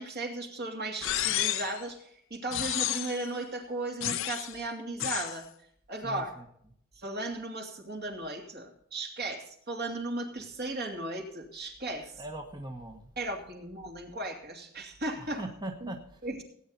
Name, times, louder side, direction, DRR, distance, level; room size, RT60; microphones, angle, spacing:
voice 1, 0.0-5.5 5.9-6.3 7.0-12.1 13.2-15.4 15.8-15.9 16.2-16.4, right 2 dB, 45° right, 2 dB, 2.7 m, -36 dB
sound 1, 1.0-1.8 2.5-3.3 4.0-4.5 5.0-5.4, left 12 dB, 65° left, 0.7 m, -31 dB
voice 2, 6.0-6.5 12.2-13.1 15.2-16.4, right 1 dB, 20° right, 3 dB, 1.2 m, -41 dB
18.0 x 9.2 x 4.0 m, 0.67 s
head